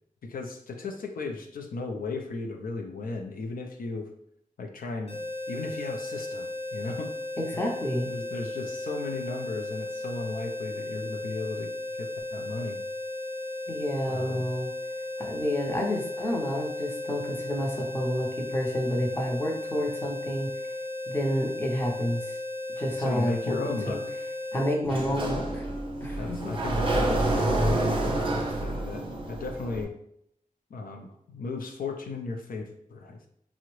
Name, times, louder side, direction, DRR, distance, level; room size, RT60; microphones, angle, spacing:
voice 1, 0.2-4.1 4.6-5.2 5.5-7.1 7.5-7.7 8.0-11.7 12.0-12.8 14.1-14.5 23.0-24.0 26.2-29.9 30.7-33.3, left 3 dB, 80° left, 3 dB, 0.4 m, -36 dB
sound 1, 5.1-24.8, left 2 dB, 45° left, 0.8 m, -35 dB
voice 2, 7.4-8.1 13.7-14.7 15.2-20.5 21.1-22.4 22.8-24.0 24.5-25.7 26.0-26.5, left 1 dB, 15° left, 0 dB, 0.5 m, -29 dB
Sliding door, 24.8-29.8, right 2 dB, 40° right, 0.5 m, -28 dB
3.6 x 2.0 x 3.0 m, 0.73 s
wide cardioid pair, 160°, 14 cm